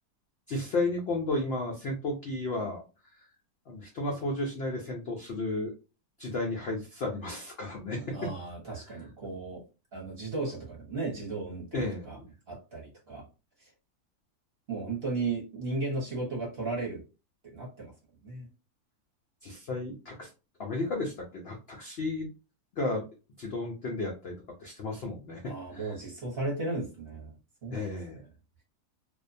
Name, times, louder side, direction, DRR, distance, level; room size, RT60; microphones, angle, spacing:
voice 1, 0.5-2.8 3.7-5.7 6.2-8.3 11.7-12.3 19.4-20.3 20.6-22.3 22.7-23.0 23.4-25.9 27.7-28.2, left 2 dB, 90° left, 0 dB, 0.5 m, -33 dB
voice 2, 8.0-9.6 9.9-12.2 12.5-13.2 13.6-13.7 14.7-17.0 17.4-17.9 18.2-18.5 25.4-27.3 27.6-27.8, right 3 dB, 45° right, -3 dB, 0.9 m, -35 dB
2.5 x 2.1 x 2.5 m, 0.31 s
omnidirectional pair, 1.7 m